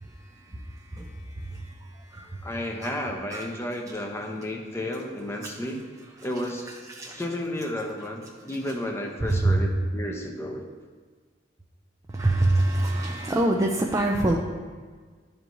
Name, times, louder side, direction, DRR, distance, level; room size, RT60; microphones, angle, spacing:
voice 1, 0.0-2.4 2.8-2.9 3.3-3.5 6.9-7.2 9.3-9.6 12.1-14.4, right 2 dB, 15° right, 0 dB, 0.4 m, -26 dB
voice 2, 2.4-5.8 6.2-6.8 7.1-10.6, left 1 dB, 15° left, 2 dB, 0.7 m, -32 dB
11.5 x 4.6 x 2.6 m, 1.5 s
head